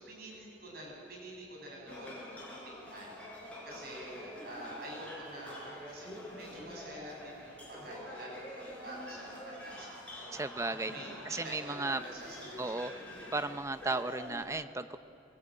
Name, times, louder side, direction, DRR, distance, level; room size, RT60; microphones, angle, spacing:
voice 1, 0.0-2.2 2.6-3.3 3.6-10.5 10.9-12.9, right 1 dB, 50° right, -3 dB, 7.6 m, -47 dB
sound 1, 1.9-14.4, left 1 dB, 5° left, 5.7 m, -46 dB
voice 2, 10.3-10.9 11.3-12.0 12.6-12.9 13.3-15.0, right 2 dB, 15° right, 10 dB, 0.7 m, -35 dB
23.0 x 22.0 x 9.0 m, 2.7 s
head